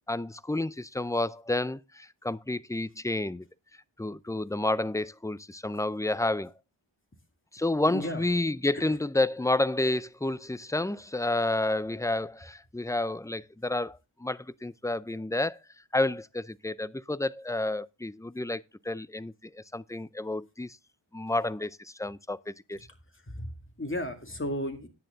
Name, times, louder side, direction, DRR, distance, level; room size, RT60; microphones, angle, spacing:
voice 1, 0.1-3.5 4.0-6.5 7.5-15.6 15.9-20.8 21.1-22.8, left 2 dB, 5° left, 0.4 m, -30 dB
voice 2, 7.9-8.2 23.3-24.9, left 1 dB, 25° left, 2.3 m, -34 dB
10.0 x 9.2 x 3.8 m
wide cardioid pair, 50°, 48 cm